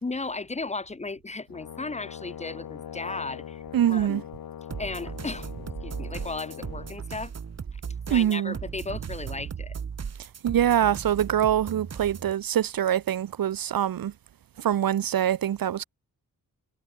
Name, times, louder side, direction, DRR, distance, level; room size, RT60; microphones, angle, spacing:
voice 1, 0.0-3.6 3.9-4.2 4.8-5.5 5.8-7.3 7.7-7.8 8.1-9.8, left 3 dB, 20° left, 1.3 m, -35 dB
Brass instrument, 1.5-7.0, left 9 dB, 75° left, 1.6 m, -41 dB
voice 2, 3.7-4.2 8.1-8.5 10.4-14.1 14.6-15.8, right 10 dB, 75° right, 0.9 m, -24 dB
sound 1, 4.7-12.3, right 6 dB, 45° right, 1.9 m, -37 dB
wide cardioid pair, 140°, 35 cm